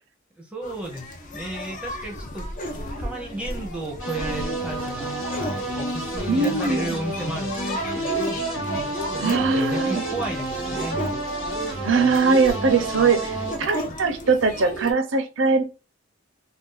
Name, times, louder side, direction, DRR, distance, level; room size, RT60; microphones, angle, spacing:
voice 1, 0.3-2.5 3.0-5.1 5.7-7.8 9.0-11.0, right 2 dB, 5° right, 0.7 m, -33 dB
sound 1, 0.6-14.9, equal, 40° left, 0.6 m, -34 dB
sound 2, 4.0-13.6, right 2 dB, 80° left, 1.3 m, -30 dB
voice 2, 6.3-7.0 9.2-10.0 11.8-15.6, right 4 dB, 70° right, 0.6 m, -21 dB
2.6 x 2.3 x 3.8 m
head